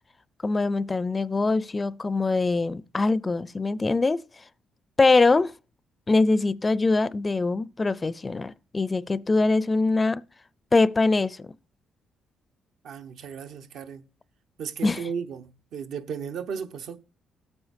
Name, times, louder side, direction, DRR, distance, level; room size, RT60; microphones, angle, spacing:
voice 1, 0.4-4.2 5.0-5.5 6.1-10.2 10.7-11.5 14.8-15.0, left 3 dB, 25° left, 0.4 m, -23 dB
voice 2, 12.8-14.0 14.6-17.0, right 6 dB, 75° right, 0.9 m, -35 dB
17.0 x 8.8 x 2.6 m
cardioid pair, 90°, 0 cm